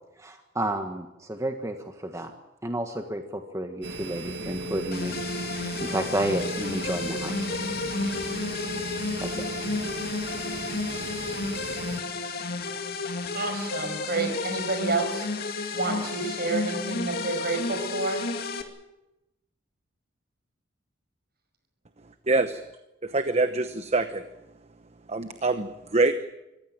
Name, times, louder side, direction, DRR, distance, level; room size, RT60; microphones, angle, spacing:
voice 1, 0.2-2.3 2.6-5.2 5.5-7.5 9.2-9.4, right 1 dB, 15° right, 5 dB, 1.5 m, -31 dB
sound 1, 3.8-12.0, right 1 dB, 75° right, 1.8 m, -36 dB
sound 2, 4.9-18.6, left 3 dB, 55° left, 2.3 m, -32 dB
voice 2, 13.3-18.2, right 3 dB, 55° right, 6 dB, 5.6 m, -30 dB
voice 3, 22.3-22.6 23.1-24.2 25.1-26.1, right 3 dB, 35° right, 10 dB, 1.0 m, -24 dB
25.0 x 15.5 x 9.0 m, 0.94 s
head